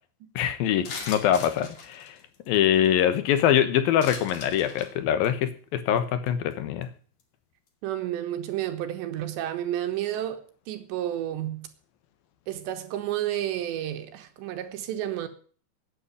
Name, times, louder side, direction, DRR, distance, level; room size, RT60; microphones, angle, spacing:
voice 1, 0.4-2.2 2.5-6.9, left 10 dB, 70° left, 2.5 m, -24 dB
sound 1, 0.8-3.0 4.0-4.9 5.2-5.4 6.0-6.1 6.3-6.5 6.8-6.9, left 4 dB, 45° left, 2.9 m, -39 dB
voice 2, 7.8-11.7 12.5-15.3, right 12 dB, 75° right, 3.3 m, -31 dB
10.0 x 8.5 x 9.7 m
omnidirectional pair, 5.2 m